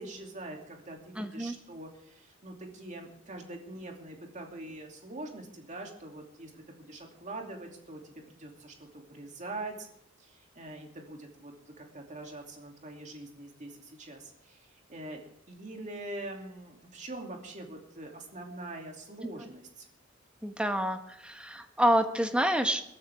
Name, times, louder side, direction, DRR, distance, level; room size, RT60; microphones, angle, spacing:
voice 1, 0.0-9.9 10.2-15.2 15.5-19.9, right 2 dB, 40° right, 1 dB, 2.8 m, -44 dB
voice 2, 1.2-1.6 19.2-19.3 20.4-22.8, equal, 5° right, 7 dB, 1.1 m, -28 dB
21.0 x 12.5 x 3.6 m, 0.79 s
head